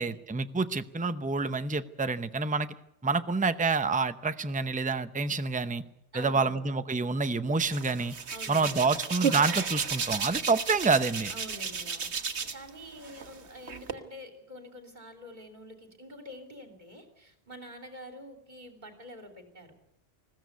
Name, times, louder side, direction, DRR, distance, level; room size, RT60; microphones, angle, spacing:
voice 1, 0.0-2.7 3.0-5.8 6.2-8.1 8.5-11.3, right 4 dB, 10° right, 11 dB, 0.6 m, -28 dB
voice 2, 6.1-6.6 8.3-9.0 11.3-19.7, equal, 40° right, 4 dB, 3.3 m, -47 dB
Hands, 7.7-12.7 13.0-13.9, right 6 dB, 70° right, 1.7 m, -33 dB
20.5 x 15.5 x 9.5 m, 0.83 s
omnidirectional pair, 1.2 m